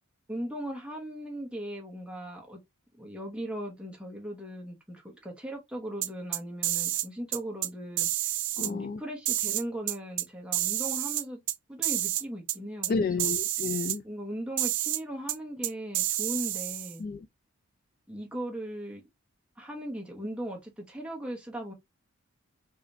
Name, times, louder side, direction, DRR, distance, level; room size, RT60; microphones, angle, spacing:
voice 1, 0.3-2.6 3.0-8.1 8.6-11.4 11.7-13.3 14.0-17.0 18.1-19.0 19.6-21.7, equal, 5° right, 1.1 m, -38 dB
sound 1, 6.0-7.1 7.3-7.7 8.0-8.7 9.2-10.2 10.5-11.5 11.8-12.2 12.5-12.6 12.8-12.9 13.2-14.0 14.6-15.0 15.3-15.4 15.6-16.9, right 14 dB, 55° right, 0.4 m, -29 dB
voice 2, 8.6-9.0 12.9-14.0 17.0-17.3, left 4 dB, 40° left, 0.3 m, -31 dB
4.9 x 2.5 x 2.6 m
head